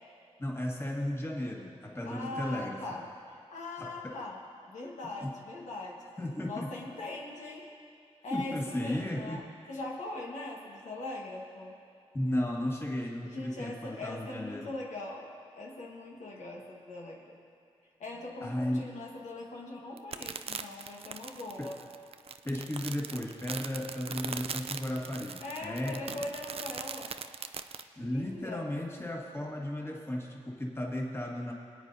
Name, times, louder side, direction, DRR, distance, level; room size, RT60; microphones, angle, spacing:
voice 1, 0.4-2.9 3.8-4.2 5.2-5.3 6.2-6.7 8.3-9.5 12.1-14.7 18.4-18.9 21.6-21.7 22.4-26.3 28.0-31.5, left 1 dB, 20° left, -1 dB, 1.7 m, -35 dB
voice 2, 2.1-4.4 4.7-6.0 6.4-7.7 8.2-11.8 13.3-15.3 15.5-17.4 18.0-21.8 25.4-27.1 28.0-28.7, left 2 dB, 80° left, -2 dB, 1.5 m, -41 dB
sound 1, 20.0-27.8, right 6 dB, 55° right, 0.4 m, -40 dB
25.0 x 9.0 x 2.7 m, 2.3 s
cardioid pair, 70°, 12 cm